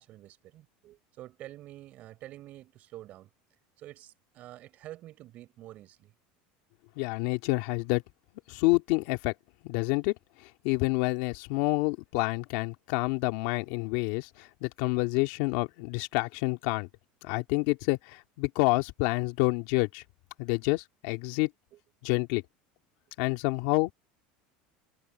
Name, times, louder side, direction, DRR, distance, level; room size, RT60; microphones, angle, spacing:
voice 1, 0.0-3.3 3.8-6.1 9.0-9.1 21.7-21.8, right 14 dB, 45° right, 6.2 m, -48 dB
voice 2, 7.0-8.0 8.5-9.3 9.6-10.1 10.4-16.9 17.2-20.0 20.4-21.5 22.0-22.4 23.2-23.9, left 22 dB, 70° left, 2.3 m, -28 dB
cardioid pair, 150°, 4 cm